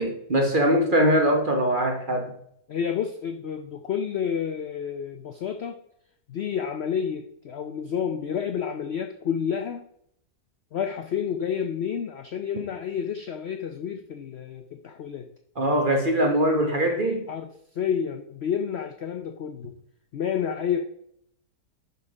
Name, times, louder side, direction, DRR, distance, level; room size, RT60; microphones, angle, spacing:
voice 1, 0.0-2.3 15.6-17.2, right 1 dB, 35° right, 1.0 m, -22 dB
voice 2, 0.9-1.3 2.7-5.8 6.3-9.8 10.7-15.3 17.3-19.7 20.1-20.8, left 7 dB, 70° left, 0.6 m, -30 dB
11.5 x 4.0 x 4.8 m
omnidirectional pair, 1.8 m